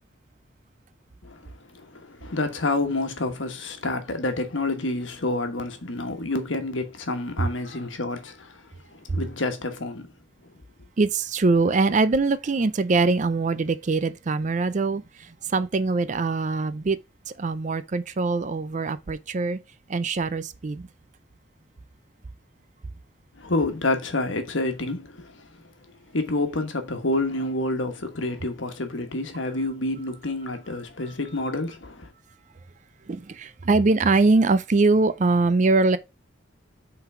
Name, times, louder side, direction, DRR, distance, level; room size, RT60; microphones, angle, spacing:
voice 1, 1.2-10.1 23.4-25.6 26.1-32.1, left 2 dB, 80° left, 1.3 m, -28 dB
voice 2, 11.0-17.0 17.4-19.6 19.9-20.9 33.1-36.0, right 3 dB, 40° right, 0.4 m, -22 dB
5.6 x 3.9 x 4.8 m
head